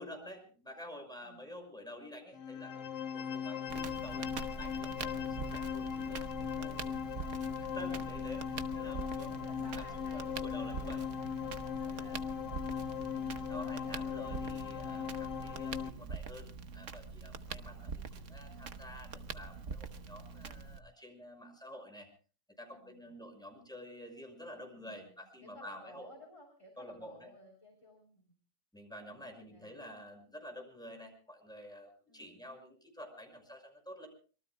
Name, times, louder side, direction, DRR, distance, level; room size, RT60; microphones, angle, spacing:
voice 1, 0.0-4.3 4.6-7.3 7.6-9.3 9.8-11.0 11.8-12.2 13.5-16.5 16.7-22.1 22.6-26.1 26.8-27.3 28.7-34.1, equal, ahead, 3 dB, 5.9 m, -49 dB
sound 1, 2.3-15.9, left 7 dB, 80° left, 1.5 m, -38 dB
Crackle, 3.7-20.8, right 5 dB, 55° right, 1.4 m, -44 dB
voice 2, 8.2-14.2 17.4-17.7 22.7-23.1 24.7-28.3 29.1-29.7 32.1-32.4, left 1 dB, 20° left, 0 dB, 3.5 m, -59 dB
26.0 x 23.0 x 2.2 m, 0.39 s
omnidirectional pair, 1.6 m